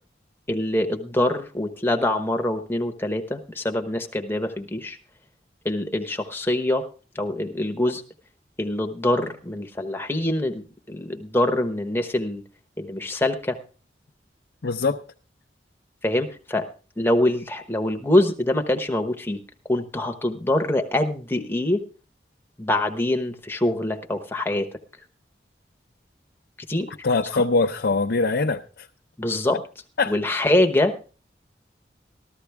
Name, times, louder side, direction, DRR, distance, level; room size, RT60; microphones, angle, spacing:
voice 1, 0.5-5.0 5.6-6.9 7.1-8.0 8.6-12.4 12.8-13.6 16.0-16.7 17.0-21.8 22.6-24.7 26.7-26.9 27.3-27.4 29.2-29.6 30.1-31.1, left 1 dB, 15° left, 5 dB, 1.0 m, -24 dB
voice 2, 14.6-15.0 27.0-28.9 30.0-30.1, left 3 dB, 70° left, 3 dB, 0.6 m, -22 dB
14.5 x 13.0 x 3.4 m, 0.36 s
head